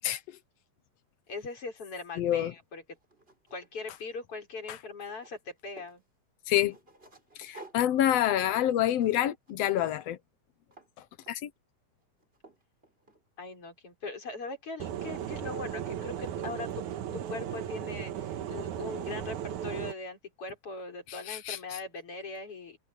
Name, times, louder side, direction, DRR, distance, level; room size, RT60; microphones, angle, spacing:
voice 1, 1.3-2.8 3.5-6.0 13.4-16.8 17.1-22.8, left 3 dB, 45° left, 6.8 m, -40 dB
voice 2, 2.2-2.5 6.5-6.8 7.4-10.2 11.3-11.5 21.1-21.6, left 12 dB, 70° left, 1.7 m, -27 dB
sound 1, 2.4-2.5 2.9-4.4 4.6-6.0 6.5-9.5 9.8-10.1 10.7-10.9 11.2-11.6 12.0-13.6 15.1-15.5 15.9-16.0 16.3-16.7, right 2 dB, 15° right, 5.3 m, -53 dB
sound 2, 14.8-19.9, right 10 dB, 80° right, 2.7 m, -36 dB
omnidirectional pair, 3.5 m